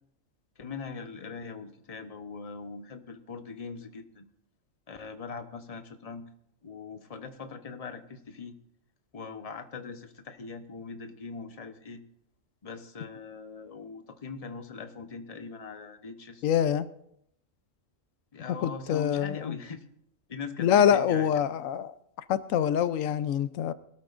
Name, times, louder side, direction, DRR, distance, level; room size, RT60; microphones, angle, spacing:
voice 1, 0.6-4.3 4.9-6.2 6.6-8.5 9.1-12.0 12.6-16.5 18.3-19.9 20.3-21.5, left 5 dB, 30° left, 1.0 m, -41 dB
voice 2, 16.4-16.9 18.6-19.5 20.6-21.9 22.3-23.7, left 9 dB, 90° left, 1.1 m, -25 dB
21.5 x 13.0 x 2.5 m
omnidirectional pair, 1.3 m